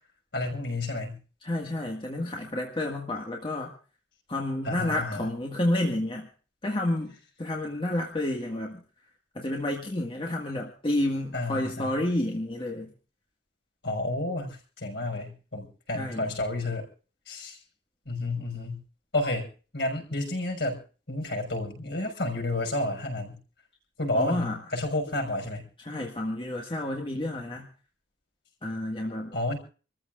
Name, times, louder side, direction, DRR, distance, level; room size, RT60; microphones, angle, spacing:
voice 1, 0.3-1.2 4.6-5.3 11.3-12.0 13.8-16.9 17.3-17.6 18.1-18.8 19.1-20.8 21.1-23.4 24.0-25.7 29.3-29.6, left 2 dB, 60° left, 2 dB, 6.0 m, -31 dB
voice 2, 1.4-3.7 4.3-6.3 6.6-8.8 9.4-12.9 15.9-16.3 24.1-24.6 25.8-27.7 28.6-29.4, left 1 dB, 25° left, 0 dB, 1.8 m, -30 dB
27.5 x 14.5 x 2.5 m, 0.38 s
head